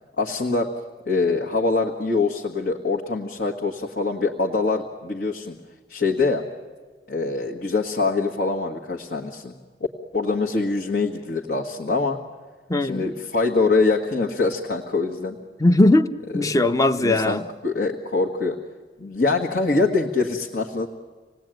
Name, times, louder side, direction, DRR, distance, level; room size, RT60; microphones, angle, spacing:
voice 1, 0.2-0.7 1.0-5.6 5.9-6.4 7.1-9.5 10.1-12.2 12.8-15.4 16.5-16.6 17.0-18.6 19.0-20.9, left 3 dB, 65° left, 0 dB, 1.7 m, -24 dB
voice 2, 12.7-13.1 15.6-17.4, left 2 dB, 20° left, 11 dB, 0.7 m, -19 dB
27.5 x 19.0 x 9.1 m, 1.4 s
head